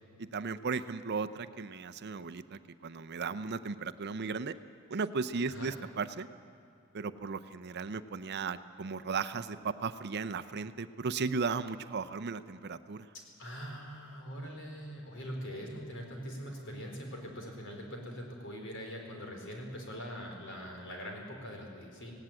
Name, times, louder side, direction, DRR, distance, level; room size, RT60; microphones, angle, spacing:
voice 1, 0.2-4.6 4.9-6.3 6.9-13.1, right 4 dB, 50° right, 12 dB, 0.6 m, -36 dB
voice 2, 13.4-22.1, equal, 60° left, 1 dB, 4.2 m, -42 dB
17.5 x 17.5 x 9.0 m, 2.5 s
head